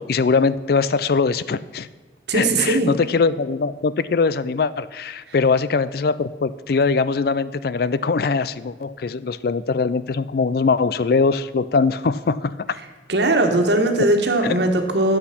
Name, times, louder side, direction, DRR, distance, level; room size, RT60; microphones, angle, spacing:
voice 1, 0.0-1.9 2.3-12.8 14.4-14.5, left 4 dB, 55° left, 16 dB, 0.4 m, -21 dB
voice 2, 2.3-2.9 5.3-5.4 13.1-15.2, right 2 dB, 70° right, 4 dB, 1.5 m, -19 dB
12.0 x 7.9 x 5.9 m, 1.3 s
head